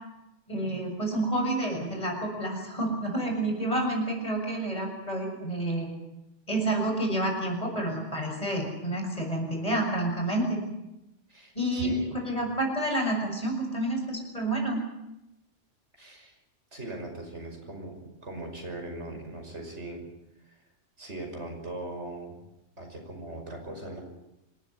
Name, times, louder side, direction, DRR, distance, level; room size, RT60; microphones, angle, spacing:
voice 1, 0.5-5.9 6.5-10.6 11.6-14.8, right 1 dB, 30° left, 1 dB, 7.0 m, -29 dB
voice 2, 11.3-12.5 16.0-16.4 16.7-20.0 20.4-20.6 21.0-22.4 22.8-24.0, right 1 dB, 65° right, 3 dB, 6.1 m, -40 dB
26.5 x 15.0 x 9.8 m, 0.91 s
omnidirectional pair, 1.3 m